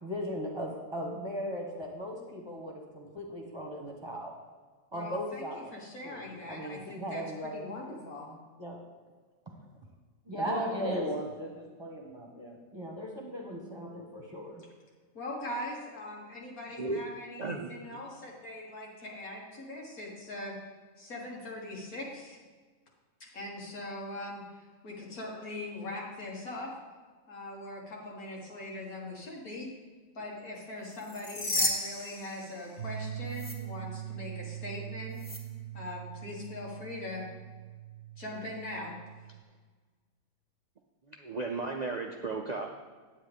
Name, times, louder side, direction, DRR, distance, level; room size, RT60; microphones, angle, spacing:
voice 1, 0.0-4.3 4.9-5.7 6.0-7.6 8.6-8.8 10.2-14.6, equal, 20° right, -1 dB, 1.3 m, -37 dB
voice 2, 4.9-8.3 15.1-20.6 21.0-22.4 23.2-26.7 27.3-29.7 30.1-35.3 35.7-37.2 38.2-39.0, left 1 dB, 90° left, -3 dB, 2.4 m, -41 dB
voice 3, 17.4-17.7 41.1-42.7, right 3 dB, 50° right, 1 dB, 0.5 m, -34 dB
sound 1, 30.9-33.0 33.3-33.5 35.2-35.4, left 1 dB, 50° left, 1.6 m, -33 dB
sound 2, 32.8-39.4, right 11 dB, 90° right, 1.2 m, -42 dB
9.7 x 8.9 x 3.6 m, 1.4 s
omnidirectional pair, 1.5 m